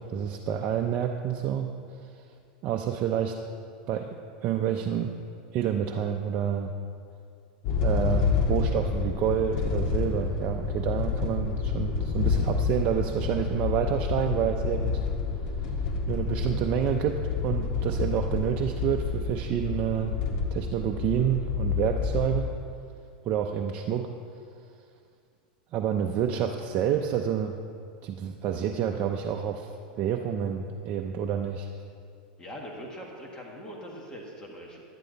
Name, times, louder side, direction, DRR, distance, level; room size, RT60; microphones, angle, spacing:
voice 1, 0.0-1.7 2.6-3.4 3.9-5.1 5.5-6.7 7.8-15.0 16.1-20.2 20.5-22.5 23.3-24.1 25.7-27.6 28.0-29.7 30.0-31.7, right 9 dB, 40° right, 3 dB, 0.5 m, -28 dB
sound 1, 7.6-22.3, left 5 dB, 60° left, 1.6 m, -29 dB
voice 2, 32.4-34.8, equal, 15° left, -1 dB, 1.5 m, -42 dB
11.0 x 10.5 x 3.9 m, 2.4 s
supercardioid pair, 130°, 5 cm